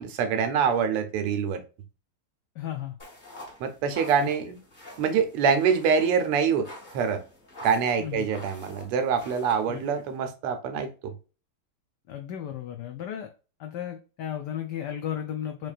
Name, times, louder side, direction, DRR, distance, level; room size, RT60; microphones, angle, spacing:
voice 1, 0.0-1.6 3.6-4.6 5.0-6.7 6.9-7.2 7.6-11.1, right 6 dB, 90° right, 1.7 m, -25 dB
voice 2, 2.6-2.9 4.2-4.3 8.0-8.3 9.7-9.8 12.1-13.3 13.6-15.7, left 10 dB, 90° left, 0.9 m, -34 dB
sound 1, 3.0-10.2, left 1 dB, 30° left, 0.9 m, -46 dB
4.7 x 2.9 x 2.4 m
omnidirectional pair, 2.4 m